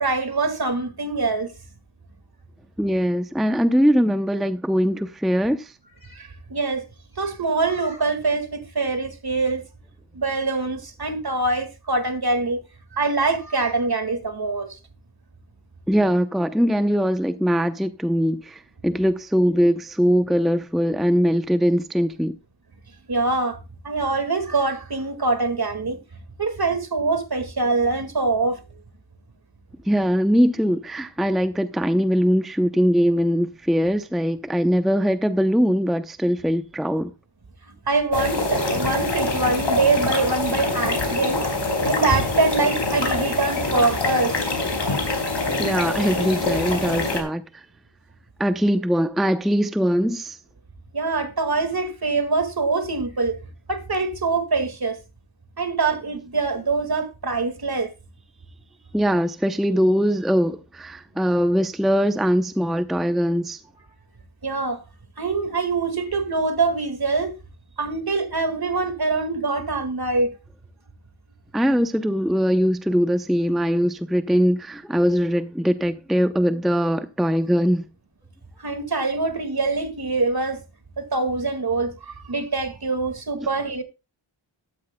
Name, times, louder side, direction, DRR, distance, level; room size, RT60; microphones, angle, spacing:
voice 1, 0.0-1.5 6.1-6.8 7.2-9.6 10.1-12.6 12.9-14.7 23.1-23.6 23.8-26.0 26.4-28.6 37.9-41.5 41.8-44.3 50.9-53.4 53.7-55.0 55.6-57.9 64.4-64.8 65.2-67.3 67.8-70.3 78.6-80.6 81.0-83.8, right 3 dB, 50° right, 2.1 m, -24 dB
voice 2, 2.8-5.7 15.9-22.3 29.9-37.1 45.6-47.6 48.4-50.4 58.9-63.6 71.5-77.9 83.4-83.5, equal, ahead, 0.6 m, -21 dB
sound 1, 38.1-47.2, left 2 dB, 60° left, 4.5 m, -24 dB
13.5 x 12.5 x 2.2 m
wide cardioid pair, 60°, 49 cm